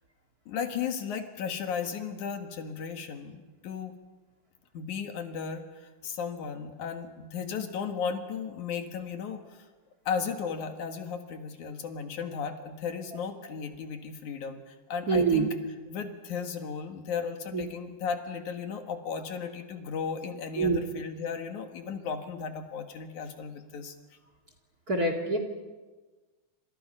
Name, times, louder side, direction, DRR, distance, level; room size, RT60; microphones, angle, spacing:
voice 1, 0.5-4.0 4.7-9.7 10.1-24.0, left 6 dB, 70° left, 6 dB, 2.9 m, -35 dB
voice 2, 15.1-15.5 17.5-17.7 20.6-20.8 24.9-25.4, right 4 dB, 30° right, 4 dB, 2.4 m, -25 dB
28.0 x 27.0 x 5.5 m, 1.3 s
omnidirectional pair, 3.7 m